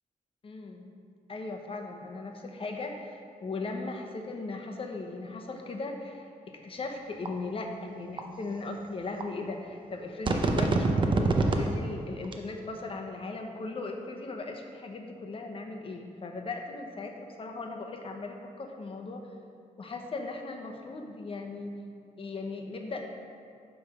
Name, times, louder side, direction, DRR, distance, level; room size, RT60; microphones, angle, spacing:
voice 1, 0.4-0.9 1.3-19.3 19.8-21.8 22.2-23.1, left 3 dB, 40° left, 3 dB, 0.8 m, -38 dB
sound 1, 7.2-7.3 8.2-8.3 9.2-9.3 10.3-11.7 12.2-12.3, right 3 dB, 35° right, 0.6 m, -24 dB
9.8 x 3.4 x 6.3 m, 2.5 s
wide cardioid pair, 150°, 15 cm